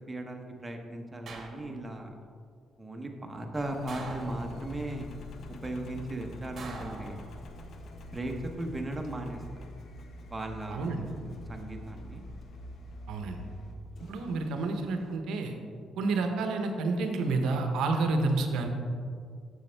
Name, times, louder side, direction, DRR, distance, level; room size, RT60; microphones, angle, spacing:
voice 1, 0.1-2.1 2.8-5.1 5.6-7.2 8.1-9.4 10.3-11.0 11.5-12.2, right 1 dB, 20° right, 3 dB, 0.8 m, -37 dB
sound 1, 1.3-2.0 3.9-4.8 6.6-7.7 9.1-9.6, right 3 dB, 55° right, 1.0 m, -45 dB
Engine, 3.5-15.2, left 1 dB, 60° left, 0.6 m, -46 dB
voice 2, 10.7-11.1 13.1-13.4 14.0-15.6 16.0-18.7, right 3 dB, 85° right, 5 dB, 0.7 m, -29 dB
6.9 x 6.3 x 3.3 m, 2.2 s
cardioid pair, 90°, 0 cm